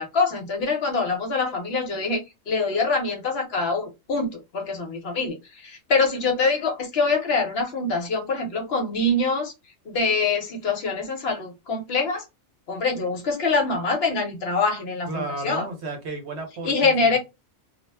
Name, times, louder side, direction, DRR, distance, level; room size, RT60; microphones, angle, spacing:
voice 1, 0.0-2.2 2.5-5.4 5.6-9.5 9.9-12.2 12.7-15.6 16.6-17.2, left 3 dB, 60° left, 0.8 m, -24 dB
voice 2, 15.1-17.2, right 3 dB, 65° right, 1.1 m, -33 dB
2.3 x 2.0 x 3.3 m
omnidirectional pair, 1.3 m